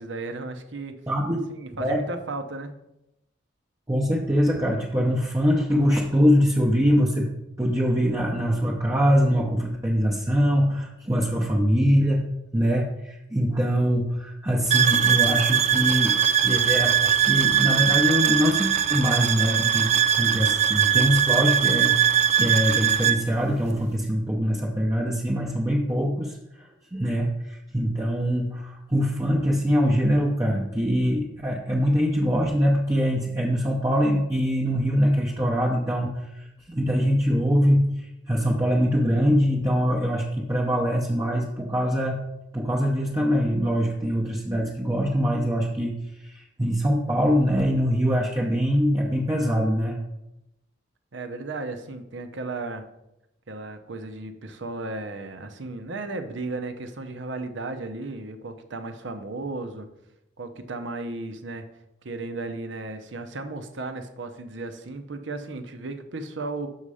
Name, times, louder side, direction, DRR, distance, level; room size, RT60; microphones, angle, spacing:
voice 1, 0.0-1.0 1.5-2.7 51.1-52.8 53.5-59.9 60.4-61.7 62.0-66.7, right 2 dB, 75° right, 8 dB, 0.8 m, -34 dB
voice 2, 1.1-1.5 1.8-2.0 3.9-7.3 7.6-12.3 12.5-16.2 16.4-42.2 42.5-45.9 46.2-50.0, equal, 15° right, -2 dB, 0.7 m, -23 dB
sound 1, 14.7-23.2, right 9 dB, 35° right, 0.3 m, -21 dB
6.5 x 5.5 x 4.9 m, 0.88 s
head